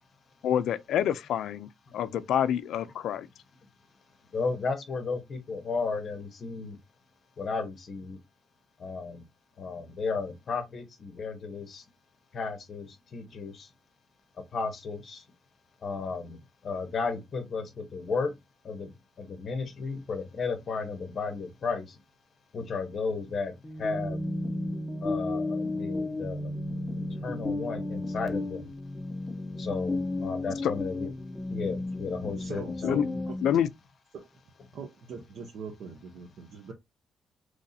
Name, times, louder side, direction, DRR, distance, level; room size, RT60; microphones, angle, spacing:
voice 1, 0.4-3.3 30.6-30.7 32.8-33.1 33.4-33.7, left 9 dB, 70° left, 0.4 m, -27 dB
voice 2, 4.3-6.8 7.4-8.2 8.8-9.2 9.6-11.8 12.3-13.7 14.5-15.2 15.8-18.3 18.6-22.0 22.5-24.2 25.0-26.5 27.0-28.7 29.6-31.1 31.5-32.9, left 4 dB, 35° left, 0.9 m, -34 dB
sound 1, 23.6-33.6, left 2 dB, 10° left, 0.5 m, -33 dB
voice 3, 32.4-33.6 34.1-34.3 34.7-36.7, right 5 dB, 65° right, 0.8 m, -42 dB
3.0 x 2.7 x 4.0 m
cardioid pair, 160°, 0 cm